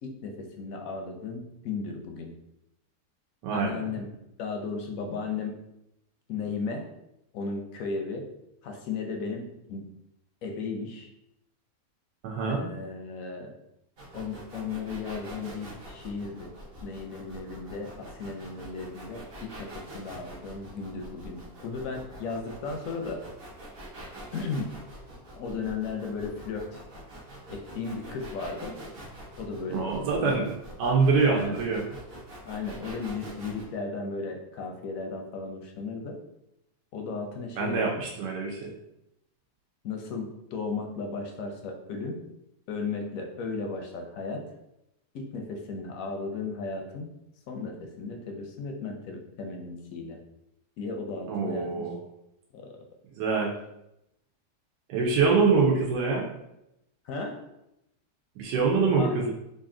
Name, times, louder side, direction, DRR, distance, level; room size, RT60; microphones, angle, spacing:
voice 1, 0.0-2.3 3.5-4.1 4.4-5.6 6.3-6.9 7.3-8.3 8.6-9.9 10.4-11.1 12.5-13.5 14.1-16.6 16.8-23.3 24.3-24.7 25.4-26.8 27.5-28.8 29.4-30.4 31.3-31.6 32.4-36.2 36.9-38.0 39.8-42.2 42.7-44.5 45.1-47.1 47.5-50.2 50.8-51.9 52.5-52.7 57.0-57.4 59.0-59.1, left 4 dB, 70° left, 3 dB, 0.8 m, -35 dB
voice 2, 3.4-3.8 12.2-12.6 29.7-30.5 30.8-31.8 37.6-38.7 51.3-52.0 53.1-53.6 54.9-56.3 58.4-59.3, right 4 dB, 80° right, -2 dB, 1.2 m, -25 dB
sound 1, 14.0-33.6, right 1 dB, 50° right, 0.7 m, -45 dB
3.3 x 2.6 x 3.6 m, 0.84 s
omnidirectional pair, 1.8 m